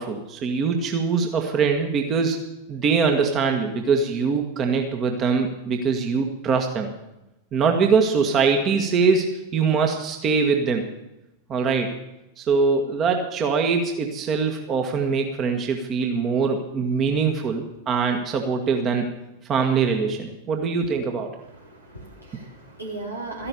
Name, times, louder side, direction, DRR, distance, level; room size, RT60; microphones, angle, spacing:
voice 1, 0.0-2.4 2.7-6.9 7.5-10.9 11.5-11.9 12.4-19.1 19.5-21.3, right 5 dB, 30° right, 4 dB, 1.7 m, -23 dB
voice 2, 21.4-23.5, right 2 dB, 85° right, -3 dB, 3.9 m, -36 dB
14.0 x 11.5 x 6.9 m, 0.92 s
figure-of-eight pair, 90°, 0 cm